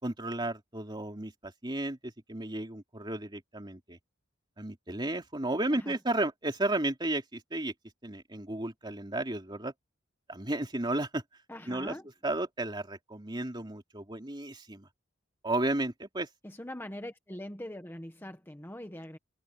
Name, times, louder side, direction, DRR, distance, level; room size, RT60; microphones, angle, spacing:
voice 1, 0.0-4.0 4.6-7.7 8.0-9.7 10.3-11.2 11.7-12.0 12.2-14.9 15.4-16.3, right 2 dB, 25° right, 3.1 m, -33 dB
voice 2, 11.5-12.1 16.4-19.2, left 1 dB, 10° left, 1.2 m, -42 dB
head